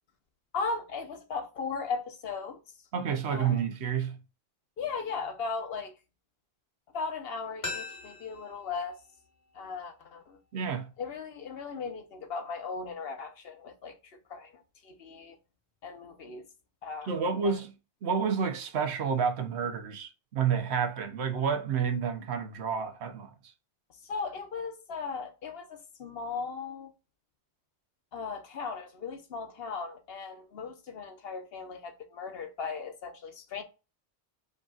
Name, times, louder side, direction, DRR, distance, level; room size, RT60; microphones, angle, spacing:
voice 1, 0.5-2.6 3.3-3.6 4.8-5.9 6.9-9.0 9.5-10.4 11.0-15.4 15.8-16.5 16.8-17.1 17.4-17.6 24.0-26.9 28.1-33.6, left 4 dB, 70° left, 1.1 m, -37 dB
voice 2, 2.9-4.2 10.5-10.9 17.1-17.7 18.0-23.3, right 6 dB, 85° right, 1.1 m, -29 dB
sound 1, 7.6-10.4 10.7-10.8, left 3 dB, 30° left, 1.4 m, -43 dB
5.1 x 3.8 x 2.4 m
omnidirectional pair, 1.1 m